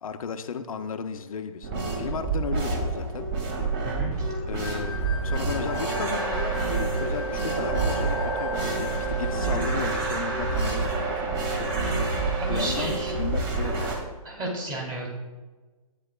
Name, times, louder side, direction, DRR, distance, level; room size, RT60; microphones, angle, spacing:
voice 1, 0.0-3.3 4.5-4.9 5.2-8.8 9.1-11.7 12.5-13.9, left 6 dB, 70° left, 6 dB, 0.7 m, -35 dB
sound 1, 1.6-14.0, right 3 dB, 35° right, 2.1 m, -28 dB
voice 2, 3.8-4.3 12.4-13.1 14.2-15.1, right 1 dB, 20° right, -1 dB, 2.4 m, -32 dB
sound 2, 4.6-10.7, left 7 dB, 40° left, 0.9 m, -39 dB
Wind instrument woodwind instrument, 6.1-13.4, right 8 dB, 5° left, 0.4 m, -36 dB
12.0 x 9.0 x 2.3 m, 1.2 s
hypercardioid pair, 140°, 19 cm